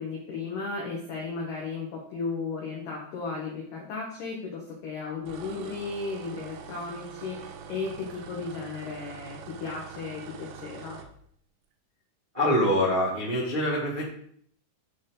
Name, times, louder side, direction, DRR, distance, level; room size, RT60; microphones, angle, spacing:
voice 1, 0.0-11.0, left 4 dB, 85° left, -1 dB, 1.9 m, -35 dB
sound 1, 5.3-11.1, right 7 dB, 90° right, 3.2 m, -44 dB
voice 2, 12.3-14.0, equal, 50° right, -9 dB, 0.5 m, -25 dB
9.2 x 4.5 x 3.8 m, 0.63 s
omnidirectional pair, 5.6 m